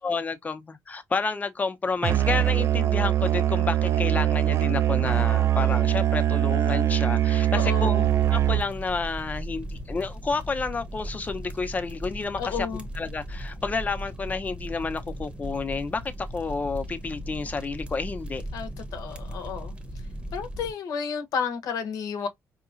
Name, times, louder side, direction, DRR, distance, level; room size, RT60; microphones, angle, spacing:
voice 1, 0.0-12.7 13.0-18.4, left 4 dB, 25° left, 0.7 m, -30 dB
Musical instrument, 2.0-8.8, right 12 dB, 50° right, 0.3 m, -22 dB
voice 2, 7.5-8.1 12.4-12.9 18.5-19.7 20.3-22.3, left 6 dB, 90° left, 0.9 m, -31 dB
sound 1, 8.0-20.7, equal, 20° right, 0.8 m, -37 dB
4.8 x 2.9 x 2.5 m
cardioid pair, 130°, 6 cm